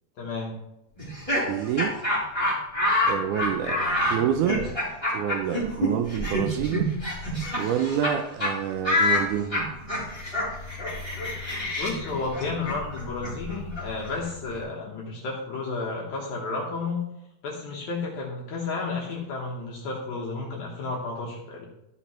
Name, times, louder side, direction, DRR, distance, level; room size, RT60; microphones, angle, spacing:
voice 1, 0.2-0.6 11.8-17.0 17.4-21.7, left 3 dB, 70° left, -2 dB, 2.4 m, -32 dB
Laughter, 1.0-8.1 8.4-8.5 8.8-14.6, left 1 dB, 10° left, 3.2 m, -27 dB
voice 2, 1.5-2.0 3.0-4.6 5.1-6.9 7.6-9.7, right 9 dB, 80° right, 7 dB, 2.0 m, -28 dB
13.0 x 6.0 x 3.0 m, 0.86 s
omnidirectional pair, 3.6 m